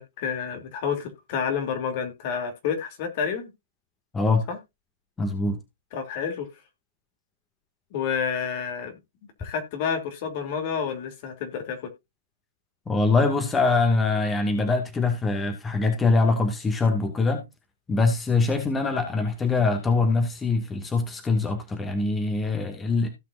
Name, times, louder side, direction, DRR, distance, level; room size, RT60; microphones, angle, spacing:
voice 1, 0.0-3.5 4.5-4.6 5.9-6.5 7.9-9.0 9.4-11.8, left 7 dB, 50° left, 3.0 m, -29 dB
voice 2, 4.1-4.5 5.2-5.6 12.9-17.4 17.9-23.1, left 3 dB, 15° left, 2.0 m, -23 dB
16.5 x 5.8 x 2.6 m
hypercardioid pair, 130°, 0 cm